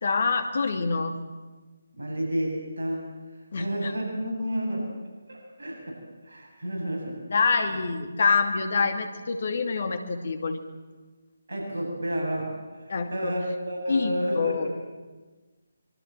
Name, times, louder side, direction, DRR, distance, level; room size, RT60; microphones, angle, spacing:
voice 1, 0.0-1.2 3.5-3.9 7.3-10.6 12.9-13.3 13.9-14.7, left 4 dB, 45° left, 7 dB, 2.5 m, -26 dB
voice 2, 1.9-3.1 3.6-4.9 5.3-7.2 7.7-7.8 11.5-14.8, equal, 60° right, -1 dB, 7.7 m, -31 dB
24.5 x 23.0 x 7.7 m, 1.3 s
figure-of-eight pair, 150°, 0 cm